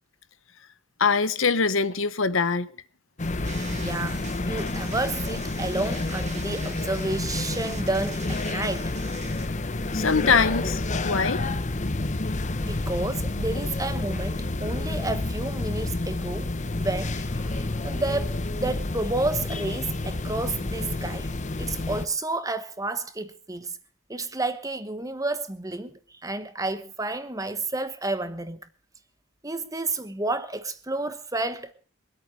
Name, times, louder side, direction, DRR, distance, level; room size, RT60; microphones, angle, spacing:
voice 1, 1.0-2.7 9.9-11.4, left 5 dB, 70° left, 1.0 m, -23 dB
sound 1, 3.2-22.1, left 2 dB, 35° left, 0.9 m, -29 dB
sound 2, 3.4-9.5, right 4 dB, 35° right, 1.8 m, -43 dB
voice 2, 3.7-8.9 12.6-21.3 21.6-23.8 24.1-28.6 29.4-31.7, right 2 dB, 15° right, 1.1 m, -31 dB
23.0 x 8.7 x 6.4 m
head